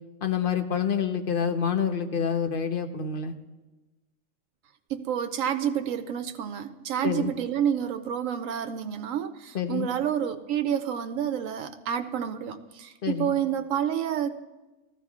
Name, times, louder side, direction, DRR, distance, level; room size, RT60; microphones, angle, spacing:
voice 1, 0.2-3.3 7.0-7.3 9.5-9.9 13.0-13.3, left 7 dB, 45° left, 6 dB, 1.0 m, -27 dB
voice 2, 4.9-14.4, right 9 dB, 80° right, 8 dB, 1.0 m, -29 dB
20.0 x 14.5 x 2.4 m, 1.1 s
omnidirectional pair, 1.3 m